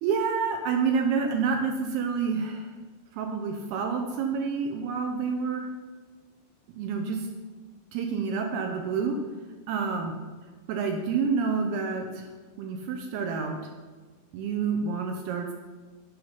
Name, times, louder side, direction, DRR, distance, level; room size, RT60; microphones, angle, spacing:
voice 1, 0.0-2.7 3.1-5.7 6.7-7.3 7.9-9.2 9.7-10.1 10.7-12.3 12.6-13.6 14.3-15.5, right 5 dB, 80° right, 3 dB, 2.5 m, -28 dB
8.6 x 5.8 x 5.6 m, 1.3 s
omnidirectional pair, 5.1 m